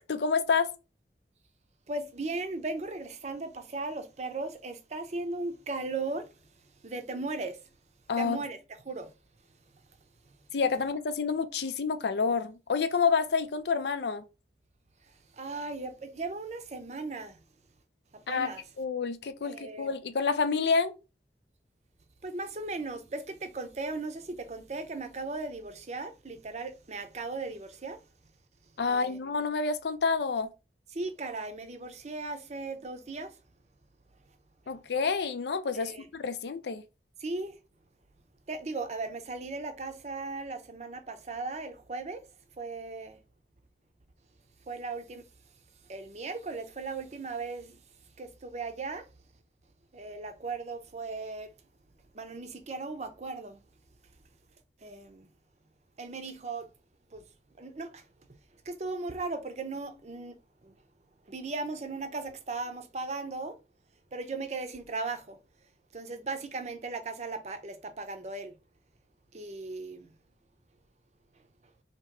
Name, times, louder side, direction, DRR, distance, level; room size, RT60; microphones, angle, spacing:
voice 1, 0.1-0.7 8.1-8.4 10.5-14.2 18.3-18.5 18.8-20.9 28.8-30.5 34.7-36.8, left 5 dB, 70° left, 0.5 m, -28 dB
voice 2, 1.9-6.3 6.8-7.6 8.2-8.6 8.8-9.1 10.3-10.4 15.3-17.4 18.1-18.6 19.4-19.9 22.2-28.0 28.9-29.2 30.9-33.4 35.7-36.1 37.2-37.6 38.5-42.2 42.6-43.2 44.7-45.3 45.9-47.8 48.2-49.1 49.9-51.5 52.1-53.6 54.8-55.3 56.0-56.7 57.1-57.2 57.6-58.0 58.6-60.4 60.6-60.7 61.3-63.6 64.1-65.4 65.9-68.6 69.3-70.1, right 3 dB, 40° right, 0.6 m, -37 dB
2.9 x 2.9 x 4.5 m
head